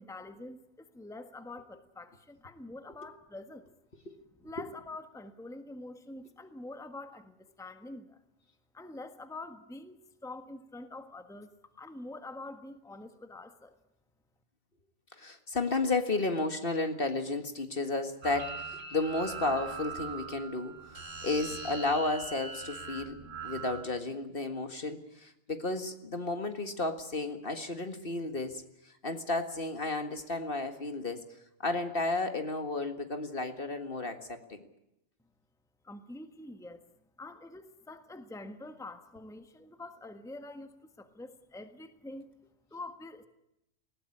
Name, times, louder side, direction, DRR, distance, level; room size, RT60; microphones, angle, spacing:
voice 1, 0.0-3.7 4.4-8.2 8.7-13.8 35.8-36.8 37.2-42.3 42.7-43.3, left 2 dB, 5° left, 8 dB, 1.4 m, -46 dB
voice 2, 15.1-23.2 23.4-31.2 31.6-34.6, left 2 dB, 45° left, 7 dB, 1.9 m, -33 dB
sound 1, 18.2-23.8, right 5 dB, 70° right, 3.6 m, -41 dB
20.5 x 17.5 x 9.9 m, 0.85 s
omnidirectional pair, 1.4 m